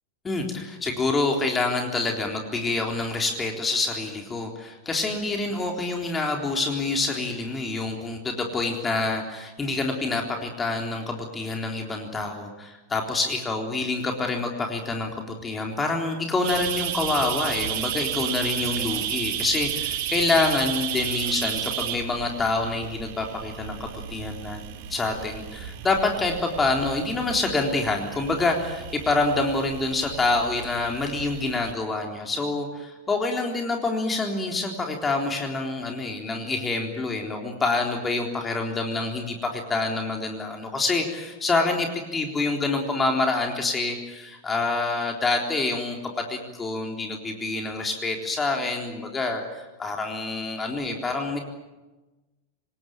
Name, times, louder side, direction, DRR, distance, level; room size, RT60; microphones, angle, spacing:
voice 1, 0.2-24.6 24.9-46.0 46.3-51.4, left 3 dB, 15° left, 2 dB, 3.7 m, -27 dB
sound 1, 16.4-31.7, right 11 dB, 50° right, 1.8 m, -33 dB
26.5 x 20.0 x 9.1 m, 1.1 s
figure-of-eight pair, 90°, 0 cm